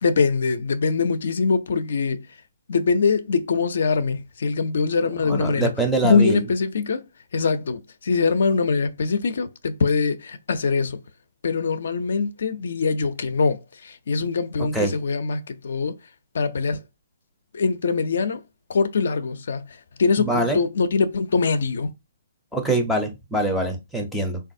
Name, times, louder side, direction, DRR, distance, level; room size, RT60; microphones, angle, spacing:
voice 1, 0.0-2.2 2.7-5.7 6.0-7.0 7.3-11.0 11.4-15.9 16.3-16.8 17.5-18.4 18.7-19.7 20.0-21.9, left 4 dB, 65° left, 0.4 m, -23 dB
voice 2, 5.0-6.4 14.6-14.9 20.2-20.6 22.5-24.4, right 2 dB, ahead, 0.5 m, -24 dB
3.3 x 2.3 x 2.5 m
hypercardioid pair, 155°, 0 cm